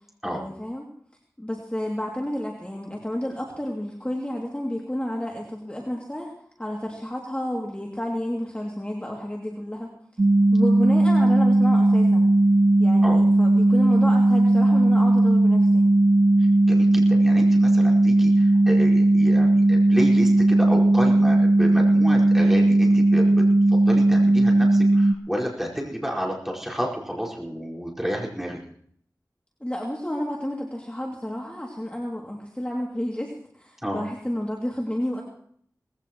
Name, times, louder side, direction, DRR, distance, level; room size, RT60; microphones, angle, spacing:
voice 1, 0.2-0.8 1.4-6.3 6.6-9.9 10.5-12.3 12.8-15.9 29.6-35.2, equal, 15° left, -2 dB, 2.6 m, -31 dB
sound 1, 10.2-25.1, right 2 dB, 40° right, 0.6 m, -17 dB
voice 2, 16.4-28.6 33.8-34.0, equal, 5° right, -3 dB, 4.9 m, -31 dB
19.5 x 16.0 x 3.1 m, 0.62 s
wide cardioid pair, 45°, 7 cm